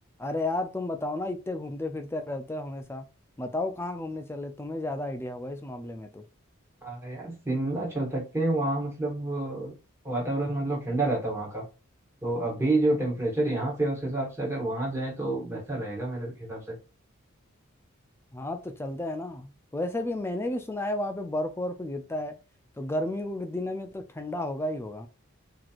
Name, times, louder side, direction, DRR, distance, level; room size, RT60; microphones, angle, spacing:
voice 1, 0.2-3.1 3.4-6.2 18.3-22.4 22.8-25.1, left 1 dB, 10° left, 0.3 m, -32 dB
voice 2, 6.8-9.7 10.0-11.6 12.2-16.7, right 2 dB, 10° right, 1.4 m, -29 dB
4.2 x 2.9 x 2.4 m
head